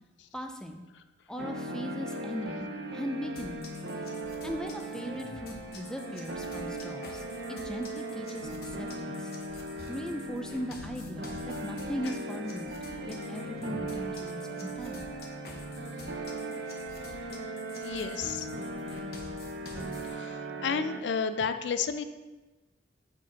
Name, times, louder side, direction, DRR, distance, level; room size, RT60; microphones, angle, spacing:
voice 1, 0.3-0.8 1.3-3.6 3.9-4.0 4.4-9.3 9.9-12.8 13.0-15.1, equal, 5° left, 4 dB, 0.4 m, -38 dB
sound 1, 1.4-21.0, right 1 dB, 65° right, 0.6 m, -38 dB
sound 2, 3.4-20.1, left 2 dB, 55° left, 0.9 m, -49 dB
voice 2, 17.8-18.5 20.0-22.0, left 6 dB, 75° left, 10 dB, 0.4 m, -31 dB
4.7 x 4.4 x 5.8 m, 1.1 s
head